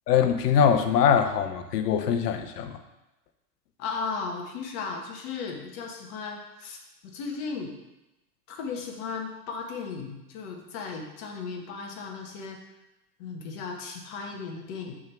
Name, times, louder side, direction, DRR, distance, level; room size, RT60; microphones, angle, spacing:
voice 1, 0.1-2.7, left 8 dB, 75° left, 8 dB, 0.9 m, -22 dB
voice 2, 3.8-7.8 8.5-12.6 13.2-14.9, left 5 dB, 50° left, 1 dB, 1.5 m, -36 dB
6.3 x 3.6 x 6.0 m, 0.97 s
hypercardioid pair, 115°, 47 cm